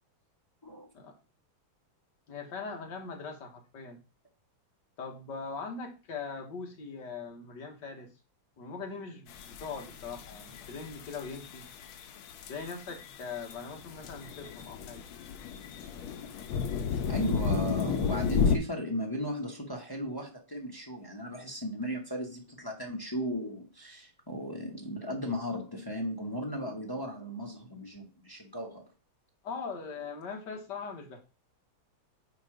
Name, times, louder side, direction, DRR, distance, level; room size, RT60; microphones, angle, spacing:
voice 1, 2.3-4.0 5.0-8.1 8.6-11.7 12.5-15.1 17.4-17.7 29.4-31.2, left 4 dB, 55° left, 2 dB, 1.9 m, -41 dB
sound 1, 9.3-18.6, left 6 dB, 75° left, 1.6 m, -34 dB
voice 2, 17.1-28.8, equal, 20° left, 0 dB, 0.5 m, -36 dB
9.0 x 3.0 x 4.9 m, 0.32 s
omnidirectional pair, 2.4 m